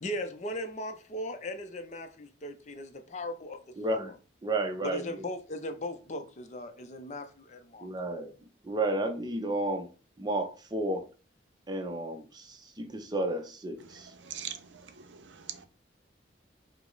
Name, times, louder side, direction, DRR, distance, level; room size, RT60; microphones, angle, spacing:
voice 1, 0.0-3.6 3.9-4.1 4.8-7.9, left 1 dB, 40° left, 0.5 m, -38 dB
voice 2, 3.8-4.1 4.4-5.3 7.8-8.3 8.6-9.9 10.2-11.1 11.7-14.1, right 1 dB, 20° right, 0.5 m, -32 dB
voice 3, 14.2-15.7, right 9 dB, 75° right, 0.6 m, -42 dB
4.9 x 2.0 x 3.8 m
head